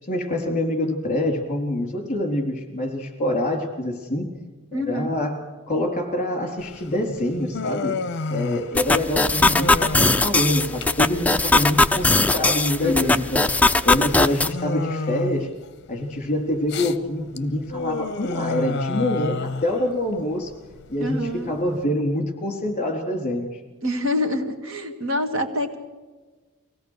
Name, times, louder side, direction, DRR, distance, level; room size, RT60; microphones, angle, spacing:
voice 1, 0.1-4.3 4.7-5.4 5.7-8.0 8.3-13.4 13.8-15.5 15.9-20.5 20.9-23.6, left 1 dB, 35° left, 3 dB, 3.8 m, -25 dB
voice 2, 4.7-5.1 12.8-13.2 21.0-21.6 23.8-25.8, left 1 dB, 70° right, 6 dB, 1.9 m, -26 dB
Human voice, 6.6-21.8, left 3 dB, 55° left, 0.8 m, -32 dB
sound 1, 8.8-14.5, left 2 dB, 5° left, 0.5 m, -20 dB
24.0 x 17.5 x 6.6 m, 1.3 s
head